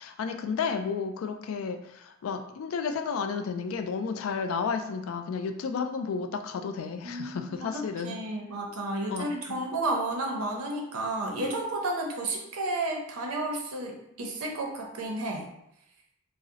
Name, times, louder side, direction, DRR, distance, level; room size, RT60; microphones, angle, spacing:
voice 1, 0.0-8.2 9.1-9.6, left 5 dB, 70° left, 6 dB, 0.3 m, -32 dB
voice 2, 7.0-15.5, right 2 dB, 85° right, 1 dB, 0.6 m, -32 dB
2.7 x 2.0 x 3.6 m, 0.79 s
head